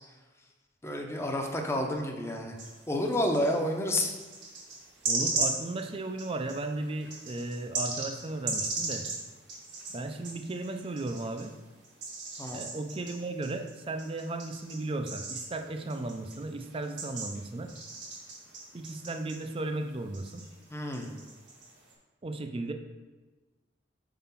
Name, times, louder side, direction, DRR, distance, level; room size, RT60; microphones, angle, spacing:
voice 1, 0.8-2.6 2.9-4.1 12.4-12.6 20.7-21.1, left 1 dB, 15° left, 2 dB, 0.7 m, -30 dB
sound 1, 2.6-3.6 4.2-11.5 11.8-19.9 20.1-21.9, right 3 dB, 70° right, 1.9 m, -37 dB
voice 2, 5.1-9.1 9.9-11.5 12.5-17.7 18.7-20.4 22.2-22.7, right 2 dB, 30° right, 6 dB, 0.5 m, -35 dB
4.9 x 3.8 x 5.7 m, 1.3 s
head